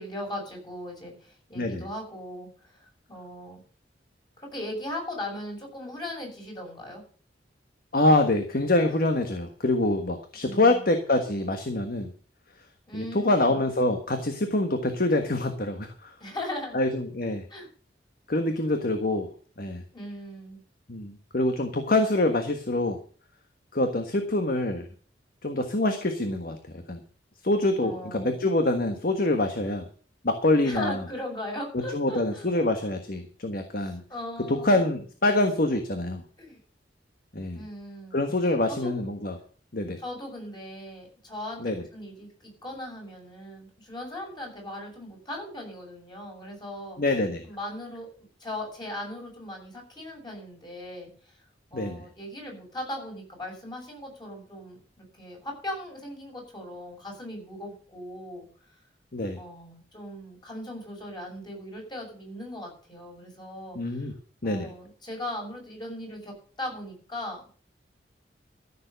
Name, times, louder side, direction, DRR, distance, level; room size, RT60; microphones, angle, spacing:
voice 1, 0.0-3.6 4.4-7.0 10.4-10.9 12.9-13.6 16.2-16.8 17.5-17.7 19.9-20.6 27.8-28.4 30.6-32.5 33.8-35.0 36.4-36.6 37.5-38.2 38.7-38.9 40.0-47.0 47.4-48.1 48.4-51.4 51.7-58.5 59.4-64.1 64.4-67.4, left 1 dB, 25° left, 0 dB, 6.6 m, -38 dB
voice 2, 1.5-1.9 7.9-12.1 12.9-16.1 16.7-17.4 18.3-19.3 19.6-19.8 20.9-23.0 23.7-24.9 25.4-26.6 26.9-27.0 27.4-29.8 30.2-31.0 31.7-34.0 34.5-36.2 37.3-37.6 38.1-39.4 39.7-40.0 41.6-41.8 47.0-47.5 51.7-52.0 59.1-59.4 63.7-64.1 64.4-64.7, left 2 dB, 55° left, 6 dB, 1.5 m, -25 dB
14.5 x 7.1 x 6.7 m, 0.43 s
head